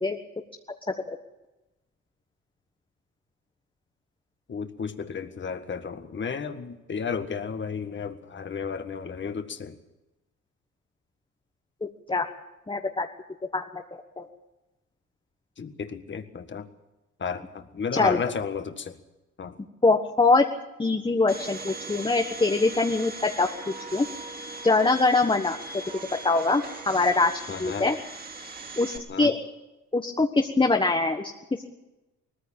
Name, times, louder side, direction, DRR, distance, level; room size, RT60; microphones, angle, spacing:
voice 1, 4.5-9.8 15.6-16.7 17.2-19.0 19.4-19.6 27.5-27.9 29.1-29.3, left 6 dB, 40° left, 8 dB, 1.7 m, -33 dB
voice 2, 11.8-12.3 12.7-13.1 13.5-13.8 14.2-14.3 17.9-18.2 19.8-20.4 20.8-24.0 24.6-25.8 26.2-27.3 27.6-28.0 28.8-29.4 29.9-31.3, left 3 dB, 15° left, 3 dB, 1.4 m, -23 dB
Domestic sounds home sounds, 21.3-29.0, right 3 dB, 30° right, 3.2 m, -39 dB
19.5 x 15.0 x 9.0 m, 1.0 s
cardioid pair, 90°, 30 cm